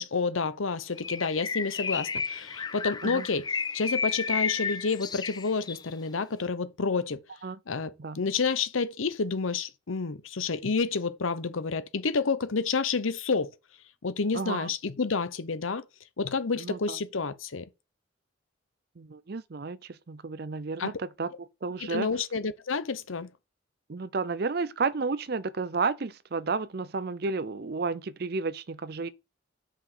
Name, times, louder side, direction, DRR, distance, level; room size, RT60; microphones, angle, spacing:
voice 1, 0.0-7.2 7.7-13.5 14.0-15.8 16.2-17.7 20.8-20.9 21.8-23.3, left 4 dB, 85° left, 0.8 m, -29 dB
Bird, 1.0-5.9, left 5 dB, 20° left, 0.3 m, -32 dB
voice 2, 14.3-14.7 16.6-17.0 19.0-19.8 20.1-21.3 21.6-22.1 23.9-29.1, right 4 dB, 50° right, 0.5 m, -32 dB
6.0 x 5.0 x 6.6 m
head